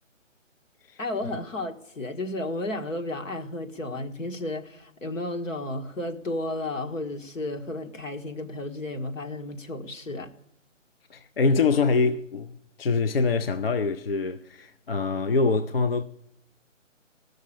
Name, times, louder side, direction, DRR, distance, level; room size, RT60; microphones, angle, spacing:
voice 1, 1.0-10.3, left 2 dB, 75° left, 1.9 m, -33 dB
voice 2, 11.1-16.0, left 4 dB, 50° left, 0.5 m, -24 dB
14.0 x 6.5 x 8.5 m
hypercardioid pair, 170°, 39 cm